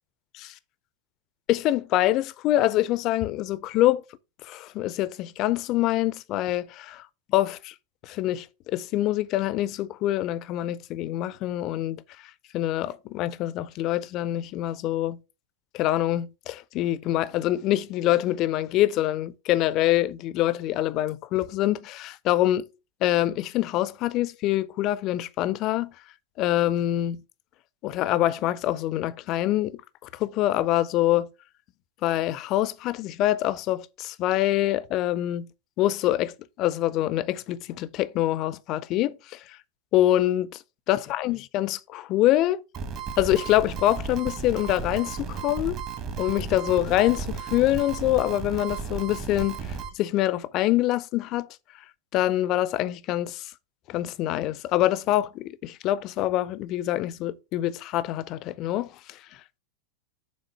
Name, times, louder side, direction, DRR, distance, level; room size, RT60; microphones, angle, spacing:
voice 1, 1.5-4.0 4.4-7.0 7.3-7.7 8.0-12.0 12.5-15.2 15.7-22.7 23.0-25.9 26.4-27.2 27.8-29.8 30.1-31.3 32.0-35.5 35.8-39.6 39.9-40.6 40.9-42.6 43.2-45.8 46.2-49.7 49.9-51.5 52.1-53.5 53.9-59.2, left 14 dB, 40° left, 0.5 m, -25 dB
sound 1, 42.7-49.9, right 5 dB, 35° right, 1.2 m, -34 dB
6.3 x 3.8 x 5.4 m
figure-of-eight pair, 90°, 0 cm